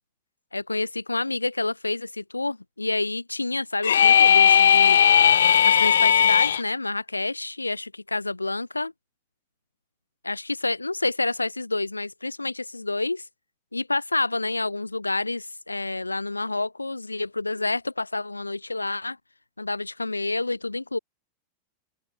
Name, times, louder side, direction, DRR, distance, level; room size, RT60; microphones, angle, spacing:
voice 1, 0.5-5.0 5.6-8.9 10.2-13.3 13.7-19.2 19.6-21.0, left 2 dB, 80° left, 6.4 m, -28 dB
sound 1, 3.8-6.6, left 8 dB, 65° left, 0.6 m, -17 dB
open air
figure-of-eight pair, 90°, 0 cm